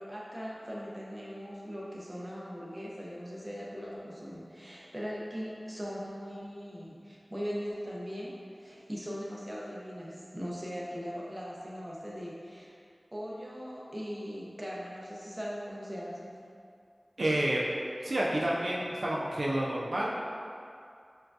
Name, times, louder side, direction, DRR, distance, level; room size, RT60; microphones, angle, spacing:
voice 1, 0.0-12.7 13.1-16.4, equal, 25° right, -5 dB, 0.8 m, -40 dB
voice 2, 17.2-17.6 18.0-20.1, right 1 dB, 80° right, -5 dB, 0.4 m, -29 dB
5.5 x 2.3 x 2.7 m, 2.4 s
wide cardioid pair, 45°, 0 cm